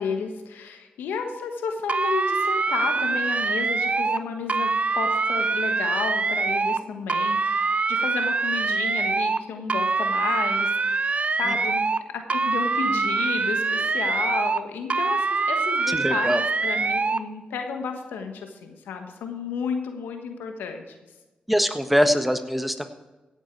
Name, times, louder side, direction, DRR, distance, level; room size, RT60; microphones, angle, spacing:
voice 1, 0.0-11.8 12.1-21.0, left 5 dB, 90° left, 5 dB, 1.3 m, -32 dB
sound 1, 1.9-4.2 4.5-6.8 7.1-9.4 9.7-12.0 12.3-14.6 14.9-17.2, right 4 dB, 40° right, 0.6 m, -24 dB
voice 2, 15.9-16.4 21.5-22.9, equal, 5° right, 8 dB, 1.4 m, -23 dB
16.5 x 8.2 x 4.7 m, 1.1 s
supercardioid pair, 45°, 3 cm